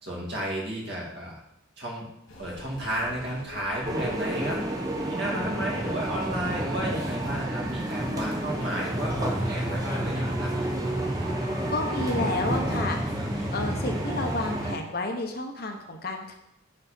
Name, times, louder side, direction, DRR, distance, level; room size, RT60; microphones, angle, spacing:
voice 1, 0.0-1.4 1.8-2.1 2.4-4.6 5.0-10.5, right 1 dB, 55° right, -2 dB, 2.2 m, -32 dB
sound 1, 2.3-14.5, left 1 dB, 80° left, 2.6 m, -46 dB
sound 2, 3.8-14.8, right 1 dB, 20° right, 1.0 m, -30 dB
voice 2, 11.7-13.0 13.5-16.3, left 2 dB, 45° left, 3 dB, 0.9 m, -30 dB
9.6 x 4.2 x 4.3 m, 0.81 s
head